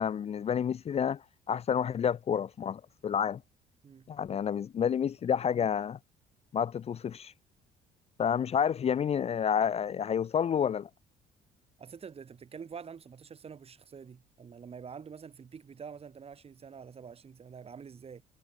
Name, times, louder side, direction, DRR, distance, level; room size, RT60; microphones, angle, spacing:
voice 1, 0.0-3.4 4.1-6.0 6.5-7.3 8.2-10.9, left 8 dB, 35° left, 0.7 m, -29 dB
voice 2, 11.8-18.2, right 6 dB, 35° right, 3.5 m, -46 dB
cardioid pair, 110°, 17 cm